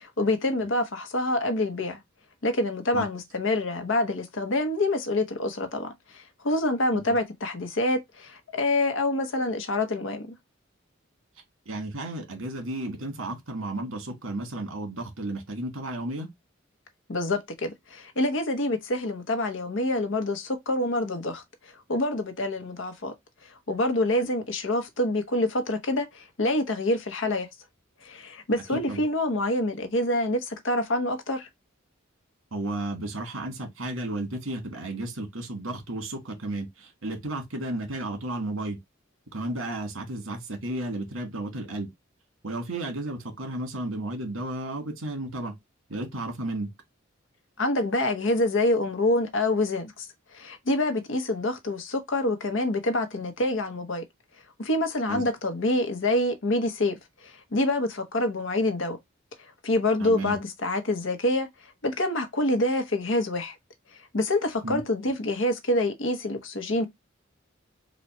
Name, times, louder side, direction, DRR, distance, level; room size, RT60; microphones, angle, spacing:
voice 1, 0.0-2.0 2.4-10.3 17.1-23.1 23.7-27.5 28.0-31.5 47.6-50.1 50.3-54.0 54.6-59.0 59.6-61.5 61.8-63.6 64.1-66.9, left 1 dB, 70° left, 0.9 m, -26 dB
voice 2, 11.7-16.3 28.9-29.0 32.5-38.8 39.3-41.9 42.4-45.5 45.9-46.7 55.1-55.3 60.0-60.4 64.6-64.8, right 1 dB, 85° right, 1.8 m, -33 dB
4.0 x 2.3 x 4.2 m
head